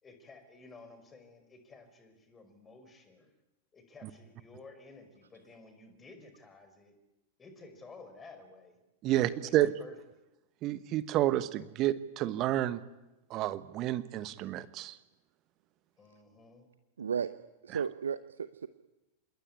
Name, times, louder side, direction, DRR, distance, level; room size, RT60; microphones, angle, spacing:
voice 1, 0.0-3.3 3.7-6.9 7.4-8.8 9.1-9.9 16.0-16.7, left 3 dB, 20° left, 8 dB, 5.2 m, -53 dB
voice 2, 9.0-9.7 10.6-12.8 13.3-15.0, right 14 dB, 35° right, 15 dB, 1.2 m, -30 dB
voice 3, 17.0-17.3 17.6-18.7, right 7 dB, 70° right, 13 dB, 0.8 m, -34 dB
27.0 x 20.5 x 9.8 m, 1.0 s
figure-of-eight pair, 90°, 0 cm